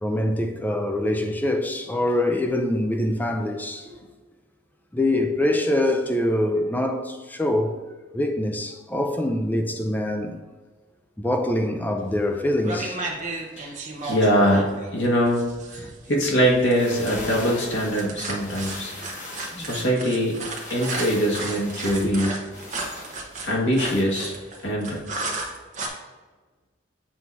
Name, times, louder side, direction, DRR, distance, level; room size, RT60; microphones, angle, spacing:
voice 1, 0.0-3.9 4.9-7.7 8.1-10.4 11.2-13.0 19.5-19.8 21.9-22.1, left 1 dB, 10° left, 0.4 m, -24 dB
sound 1, 12.1-12.3 12.6-25.9, right 2 dB, 40° right, 0.9 m, -34 dB
voice 2, 14.0-14.7 14.9-18.9 19.6-20.3 20.7-22.3 23.4-24.3 24.6-25.0, equal, 75° left, 1.6 m, -22 dB
sound 2, 16.5-24.0, left 2 dB, 40° left, 1.1 m, -40 dB
7.6 x 2.8 x 4.6 m
head